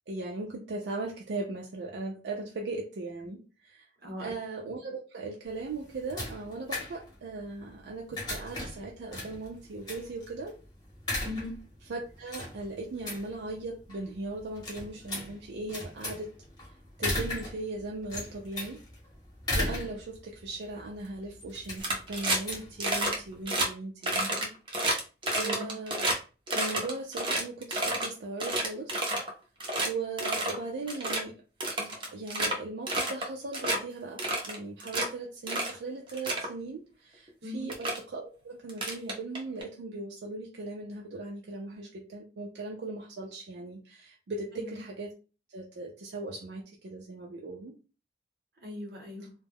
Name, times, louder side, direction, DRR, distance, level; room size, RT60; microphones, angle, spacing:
voice 1, 0.1-3.8 4.2-10.6 11.9-16.3 17.0-18.8 19.5-24.5 25.3-26.1 26.5-29.0 29.8-31.4 31.8-45.1 45.5-47.8, right 3 dB, 80° right, 0 dB, 0.4 m, -38 dB
voice 2, 4.0-4.3 11.2-11.6 25.3-25.7 37.4-37.7 44.5-44.8 48.6-49.3, left 1 dB, 60° right, 1 dB, 0.9 m, -39 dB
sound 1, 5.5-23.4, left 1 dB, 25° left, 0.9 m, -38 dB
sound 2, 21.8-22.5 22.8-23.2 23.5-23.7 24.0-26.2 26.5-28.1 28.4-29.3 29.6-29.9 30.2-30.6 30.9-31.2 31.6-32.5 32.9-33.3 33.5-33.8 34.2-35.1 35.5-35.7 36.1-36.5 37.3-37.4 37.7-38.0 38.7-39.6, right 1 dB, 30° right, 0.6 m, -29 dB
2.2 x 2.0 x 3.3 m, 0.34 s
head